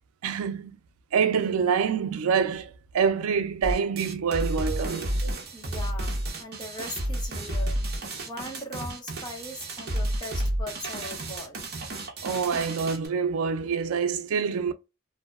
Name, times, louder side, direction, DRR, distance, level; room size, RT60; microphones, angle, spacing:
voice 1, 0.2-0.7 1.1-5.4 12.2-14.7, right 6 dB, 80° right, 0.4 m, -26 dB
sound 1, 3.6-13.1, right 1 dB, 45° right, 0.6 m, -31 dB
voice 2, 5.5-7.8 8.3-11.6, left 1 dB, 20° left, 0.7 m, -39 dB
2.7 x 2.1 x 2.2 m
head